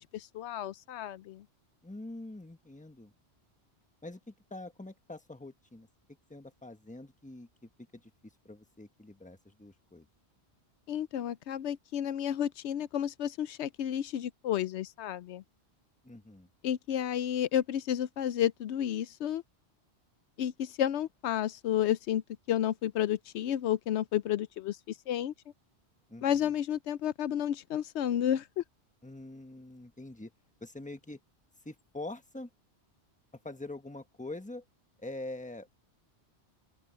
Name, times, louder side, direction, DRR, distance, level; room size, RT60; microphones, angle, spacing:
voice 1, 0.0-1.4 10.9-15.4 16.6-19.4 20.4-25.3 26.2-28.6, left 10 dB, 80° left, 0.9 m, -31 dB
voice 2, 1.8-3.1 4.0-5.9 6.3-10.1 16.0-16.5 26.1-26.5 29.0-30.3 30.6-31.2 31.6-32.5 33.4-34.6 35.0-35.7, left 2 dB, 5° left, 1.1 m, -45 dB
open air
omnidirectional pair, 1.1 m